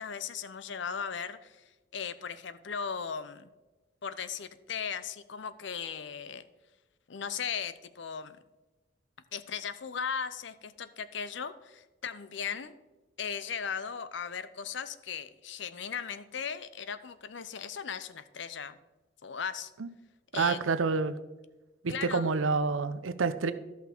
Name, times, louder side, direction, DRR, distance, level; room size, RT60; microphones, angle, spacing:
voice 1, 0.0-1.6 1.9-3.5 4.0-6.5 7.1-8.4 9.3-12.8 13.2-18.8 19.2-19.7 20.3-20.6 21.9-22.3, left 6 dB, 70° left, 14 dB, 0.6 m, -37 dB
voice 2, 20.3-21.1 21.8-23.5, right 4 dB, 90° right, 13 dB, 0.6 m, -28 dB
13.0 x 5.8 x 4.4 m, 1.2 s
head